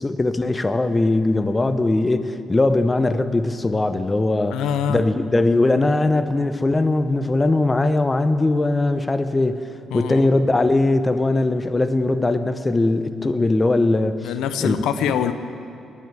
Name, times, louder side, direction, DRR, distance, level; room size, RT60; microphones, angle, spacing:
voice 1, 0.0-4.6 4.9-9.6 9.9-14.3 14.6-14.7, left 2 dB, 20° left, 11 dB, 0.7 m, -20 dB
voice 2, 4.5-5.0 9.9-10.3 14.2-15.3, left 9 dB, 85° left, 11 dB, 0.6 m, -24 dB
11.0 x 9.6 x 8.9 m, 2.6 s
cardioid pair, 90°, 0 cm